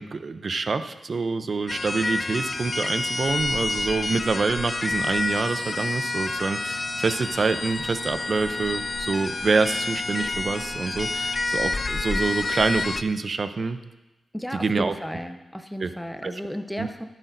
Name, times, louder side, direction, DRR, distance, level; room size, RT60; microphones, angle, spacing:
voice 1, 0.0-13.8 14.5-14.9 15.8-15.9 16.2-16.3 16.8-16.9, right 4 dB, 55° right, 10 dB, 0.6 m, -26 dB
sound 1, 1.7-13.0, left 3 dB, 45° left, 0.6 m, -29 dB
voice 2, 14.3-17.0, equal, 5° left, 7 dB, 0.9 m, -34 dB
12.5 x 10.5 x 2.7 m, 1.0 s
cardioid pair, 50°, 0 cm